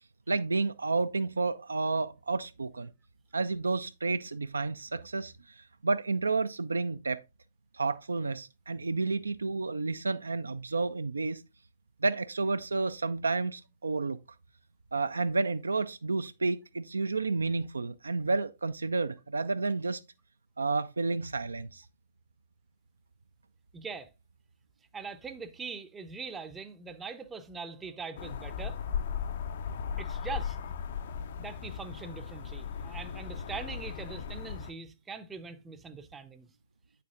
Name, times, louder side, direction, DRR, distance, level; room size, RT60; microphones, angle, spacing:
voice 1, 0.3-2.9 3.3-7.2 7.7-11.4 12.0-14.2 14.9-20.0 20.6-21.8, right 3 dB, 70° right, 0.3 m, -31 dB
voice 2, 23.7-24.1 24.9-28.8 30.0-30.6 31.4-36.5, right 5 dB, 10° right, 0.6 m, -42 dB
sound 1, 28.2-34.7, left 7 dB, 50° left, 0.6 m, -37 dB
8.4 x 6.7 x 2.4 m
figure-of-eight pair, 120°, 0 cm